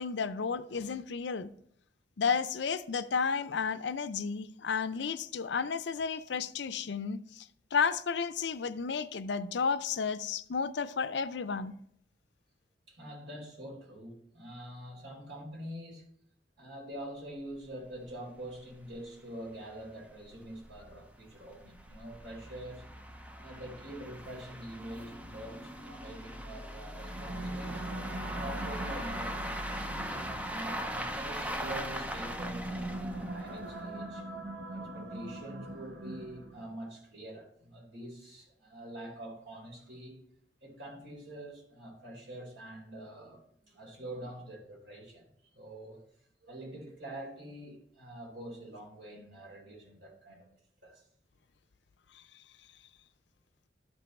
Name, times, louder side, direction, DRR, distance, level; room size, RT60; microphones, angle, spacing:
voice 1, 0.0-1.5 2.2-11.7, left 5 dB, 75° left, 0.5 m, -32 dB
voice 2, 12.9-16.1 16.6-22.9 23.3-27.8 28.3-30.1 30.3-34.2 34.7-40.2 40.6-45.2 45.5-46.0 46.4-50.5 50.8-51.0, right 1 dB, 90° right, 3.7 m, -45 dB
sound 1, 17.6-17.7 17.9-18.0 18.5-18.6 18.9-19.0 19.6-34.0, equal, 10° right, 0.6 m, -40 dB
sound 2, 26.9-36.8, right 2 dB, 75° right, 1.0 m, -42 dB
12.5 x 5.4 x 4.2 m
head